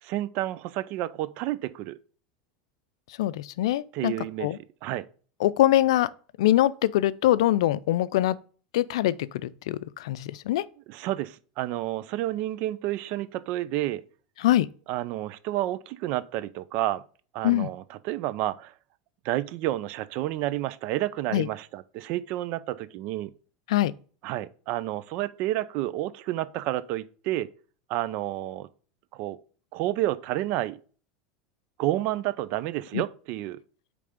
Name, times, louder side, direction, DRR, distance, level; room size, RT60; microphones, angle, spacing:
voice 1, 0.0-2.0 3.9-4.5 4.8-5.0 10.9-14.0 14.9-17.0 17.3-18.7 19.2-23.3 24.2-27.5 27.9-28.7 29.1-29.4 29.7-30.8 31.8-33.6, right 15 dB, 55° right, 0.5 m, -30 dB
voice 2, 3.2-4.1 4.4-4.6 5.4-6.1 6.4-8.4 8.7-10.6 14.4-14.7 17.4-17.7 21.3-21.5 23.7-23.9 32.9-33.0, left 14 dB, 80° left, 0.4 m, -23 dB
8.5 x 3.4 x 5.1 m
supercardioid pair, 125°, 3 cm